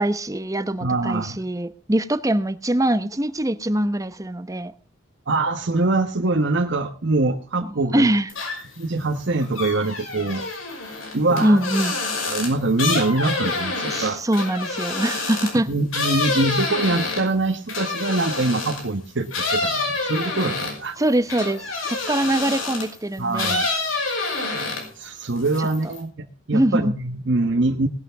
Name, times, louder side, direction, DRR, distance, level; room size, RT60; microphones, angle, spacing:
voice 1, 0.0-4.7 7.9-8.3 11.4-12.0 13.8-15.7 21.0-23.7 25.6-25.7 26.5-26.9, right 1 dB, 15° right, 0.9 m, -23 dB
voice 2, 0.8-1.4 5.3-8.1 8.8-10.4 11.1-11.6 12.2-14.2 15.7-21.0 23.2-23.6 25.0-27.9, right 2 dB, 60° right, 1.2 m, -23 dB
sound 1, 8.3-8.8 9.2-18.9 19.3-23.0 23.3-25.0 25.4-26.0, left 3 dB, 80° left, 5.6 m, -27 dB
19.0 x 11.5 x 3.5 m
head